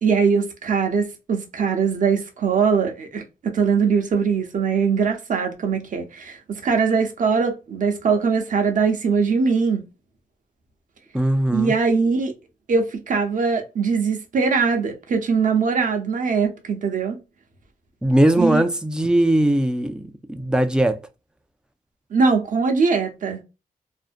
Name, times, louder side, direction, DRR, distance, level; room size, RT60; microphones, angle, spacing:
voice 1, 0.0-9.8 11.5-12.3 12.7-17.2 18.4-18.6 22.1-23.4, right 5 dB, 60° right, 0.6 m, -21 dB
voice 2, 11.1-11.7 18.0-21.0, right 1 dB, 5° right, 0.3 m, -20 dB
2.5 x 2.1 x 2.4 m
wide cardioid pair, 135°, 15 cm